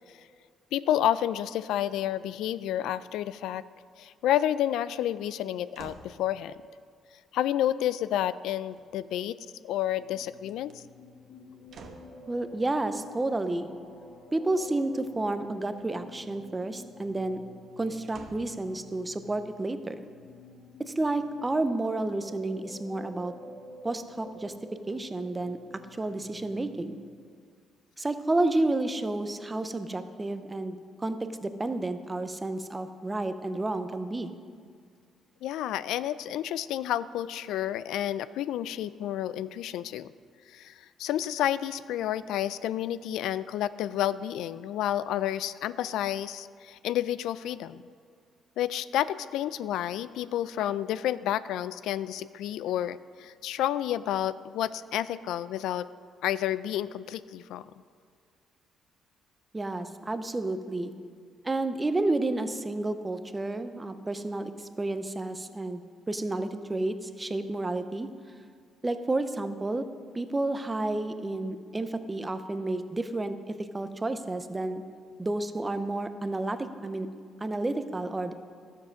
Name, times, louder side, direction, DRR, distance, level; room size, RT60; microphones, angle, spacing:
voice 1, 0.7-3.6 4.0-6.6 7.3-9.4 9.6-10.8 35.4-40.1 40.5-47.8 48.6-55.9 56.2-57.7, left 12 dB, 90° left, 16 dB, 0.3 m, -30 dB
sound 1, 5.7-6.2 8.7-9.4 10.4-10.8 11.7-12.2 15.7-16.2 18.1-18.6 19.3-19.4, right 4 dB, 45° right, 1.0 m, -49 dB
sound 2, 9.8-27.1, left 1 dB, 55° left, 1.4 m, -50 dB
voice 2, 12.3-13.7 14.3-17.4 17.8-20.0 20.9-23.3 23.8-24.5 24.9-25.6 25.9-27.0 28.0-34.3 59.5-60.9 61.4-68.1 68.8-69.8 70.1-74.8 75.2-77.1 77.4-78.3, right 2 dB, 15° right, 10 dB, 0.5 m, -31 dB
13.5 x 7.3 x 6.3 m, 2.1 s
cardioid pair, 170°, 0 cm